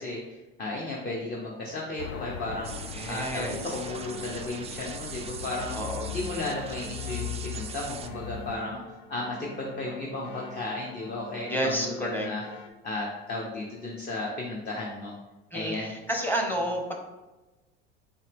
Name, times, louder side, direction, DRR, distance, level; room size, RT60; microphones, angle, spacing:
voice 1, 0.0-2.8 3.1-5.7 6.1-8.8 9.1-12.4 12.8-15.1 15.5-15.9, left 2 dB, 30° left, -2 dB, 0.9 m, -34 dB
sound 1, 2.0-8.6, left 9 dB, 85° left, 0.5 m, -39 dB
sound 2, 2.6-8.1, right 7 dB, 20° right, 0.3 m, -42 dB
voice 2, 2.9-3.5 5.7-6.1 11.5-12.3 15.5-16.9, equal, 5° left, 1 dB, 1.0 m, -30 dB
sound 3, 3.6-12.7, left 3 dB, 60° left, 0.8 m, -46 dB
4.4 x 2.9 x 3.5 m, 1.1 s
hypercardioid pair, 85°, 32 cm